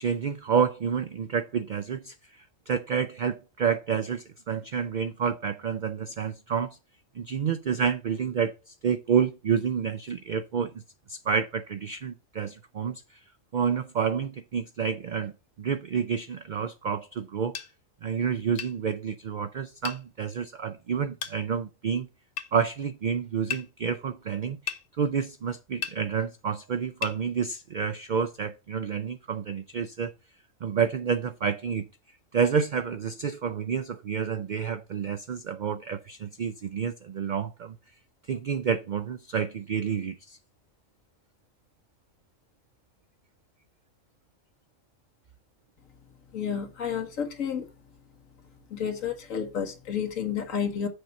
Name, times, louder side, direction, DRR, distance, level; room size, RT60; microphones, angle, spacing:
voice 1, 0.0-6.8 7.1-10.8 11.1-13.0 13.5-15.3 15.6-17.6 18.0-22.1 22.5-30.1 30.6-31.9 32.3-37.8 38.3-40.4, right 7 dB, 75° right, 0.4 m, -29 dB
sound 1, 17.5-17.7 18.6-18.8 19.8-20.0 21.2-21.4 22.4-22.5 23.5-23.7 24.7-24.8 25.8-26.0 27.0-27.2, left 7 dB, 65° left, 1.1 m, -34 dB
voice 2, 46.3-47.7 48.7-50.9, left 7 dB, 80° left, 1.6 m, -31 dB
6.7 x 4.1 x 5.8 m
omnidirectional pair, 1.4 m